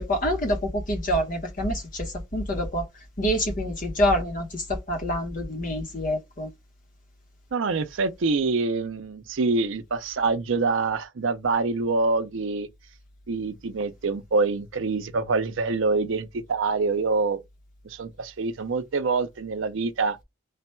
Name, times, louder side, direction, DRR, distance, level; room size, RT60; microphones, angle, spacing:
voice 1, 0.0-2.8 3.2-6.5, equal, 40° left, 1.0 m, -26 dB
voice 2, 7.5-12.7 13.3-17.4 17.9-20.2, right 3 dB, 75° right, 0.5 m, -25 dB
3.3 x 2.2 x 4.3 m
head